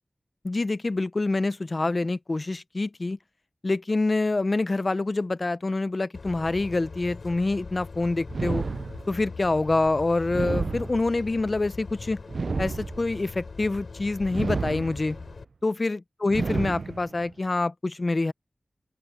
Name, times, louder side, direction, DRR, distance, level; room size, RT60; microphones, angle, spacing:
voice 1, 0.4-3.2 3.6-8.6 9.1-12.2 12.6-15.2 15.6-18.3, left 2 dB, 45° left, 0.6 m, -26 dB
sound 1, 6.1-15.4, left 4 dB, 80° left, 4.0 m, -41 dB
sound 2, 8.3-9.4 10.3-11.4 12.3-13.3 14.3-15.3 16.3-17.3, right 4 dB, 75° right, 0.5 m, -31 dB
open air
wide cardioid pair, 65°, 0 cm